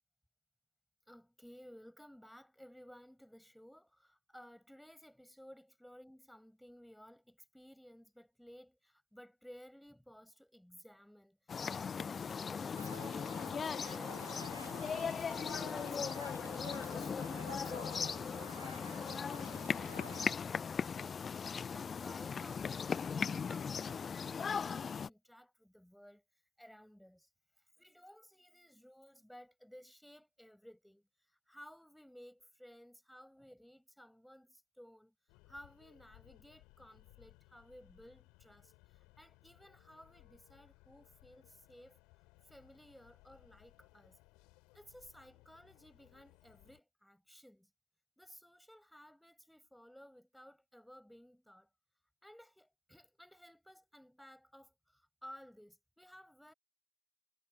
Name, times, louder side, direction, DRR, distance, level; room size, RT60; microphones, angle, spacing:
voice 1, 1.1-14.5 14.9-21.3 21.7-26.2 26.6-27.3 27.6-35.1 35.5-42.0 42.4-44.2 44.7-47.7 48.2-51.7 52.2-56.5, equal, ahead, 7.6 m, -57 dB
sound 1, 11.5-25.1, left 6 dB, 20° left, 0.5 m, -38 dB
Crowd, 12.8-20.3, right 3 dB, 80° right, 0.7 m, -52 dB
sound 2, 35.3-46.8, left 24 dB, 40° left, 6.0 m, -64 dB
figure-of-eight pair, 90°, 0 cm